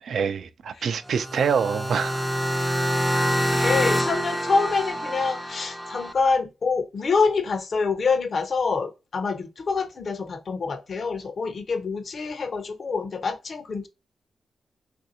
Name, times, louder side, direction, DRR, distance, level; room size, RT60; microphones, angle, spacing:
voice 1, 0.0-2.2 3.5-3.8, right 6 dB, 75° right, 0.4 m, -26 dB
sound 1, 1.1-6.1, equal, ahead, 0.4 m, -26 dB
voice 2, 3.6-13.9, left 4 dB, 55° left, 0.6 m, -26 dB
3.3 x 2.6 x 2.7 m
cardioid pair, 100°, 0 cm